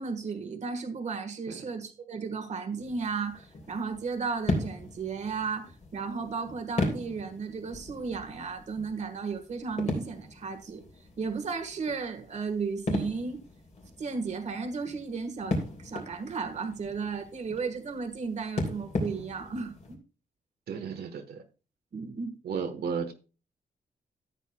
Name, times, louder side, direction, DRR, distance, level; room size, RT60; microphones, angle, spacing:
voice 1, 0.0-10.8 11.2-13.4 14.0-20.0 21.9-22.4, right 5 dB, 45° right, 1.4 m, -34 dB
sound 1, 2.8-19.9, left 2 dB, 45° left, 3.4 m, -37 dB
voice 2, 20.7-21.4 22.4-23.1, right 6 dB, 80° right, 1.2 m, -34 dB
14.0 x 8.1 x 2.3 m
wide cardioid pair, 170°, 16 cm